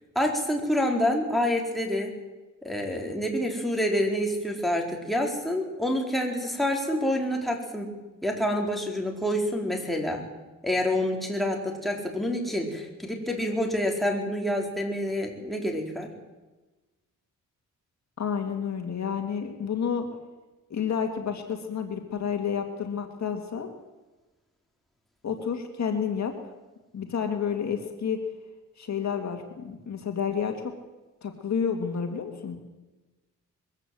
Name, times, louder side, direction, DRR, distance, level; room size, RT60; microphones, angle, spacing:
voice 1, 0.1-2.1 2.6-7.9 8.2-10.2 10.6-16.1, left 1 dB, ahead, 0 dB, 4.3 m, -27 dB
voice 2, 18.2-20.0 20.7-23.7 25.2-26.4 26.9-28.2 28.8-30.7 31.2-32.6, left 7 dB, 60° left, 5 dB, 2.3 m, -30 dB
22.0 x 15.5 x 7.8 m, 1.1 s
cardioid pair, 100°, 32 cm